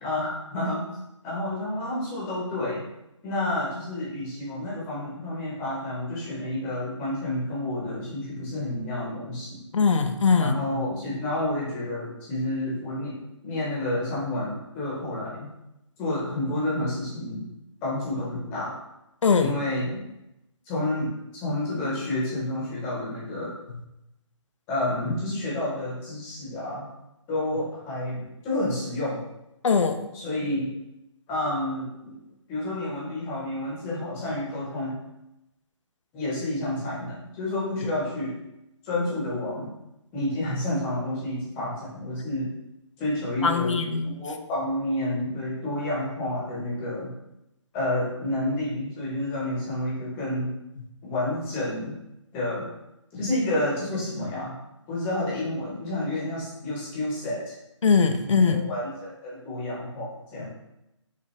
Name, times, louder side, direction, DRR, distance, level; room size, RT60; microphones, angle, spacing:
voice 1, 0.0-0.8 1.2-2.8 3.2-9.6 10.4-13.2 13.4-15.5 16.0-17.4 17.8-18.7 19.4-20.1 20.7-23.5 24.7-26.9 27.3-29.2 30.1-30.7 31.3-32.1 32.5-35.0 36.1-38.4 38.8-39.7 40.1-42.5 43.0-47.1 47.7-50.5 51.0-51.9 52.3-52.6 53.1-54.6 54.9-57.5 58.5-60.5, left 1 dB, 10° left, -6 dB, 0.9 m, -29 dB
voice 2, 9.7-10.6 19.2-19.5 29.6-30.0 43.4-44.2 57.8-58.7, left 5 dB, 75° left, 7 dB, 0.6 m, -21 dB
5.5 x 2.5 x 3.1 m, 0.89 s
hypercardioid pair, 160°, 16 cm